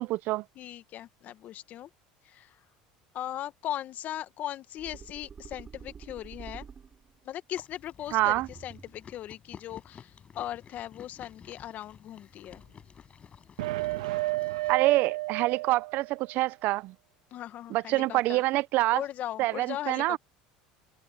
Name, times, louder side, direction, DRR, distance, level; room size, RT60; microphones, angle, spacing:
voice 1, 0.0-0.4 8.1-8.5 14.7-16.9 17.7-19.0 19.4-20.2, right 18 dB, 60° right, 0.7 m, -26 dB
voice 2, 0.6-1.9 2.2-2.6 3.1-6.7 7.2-12.6 17.3-18.4 18.9-20.2, left 12 dB, 50° left, 1.7 m, -38 dB
sound 1, 4.8-7.3 8.2-9.2, right 6 dB, 30° right, 3.8 m, -48 dB
Chewing mastication, 7.5-14.7, left 7 dB, 35° left, 7.0 m, -52 dB
sound 2, 13.6-16.3, right 20 dB, 85° right, 2.1 m, -31 dB
hypercardioid pair, 90°, 4 cm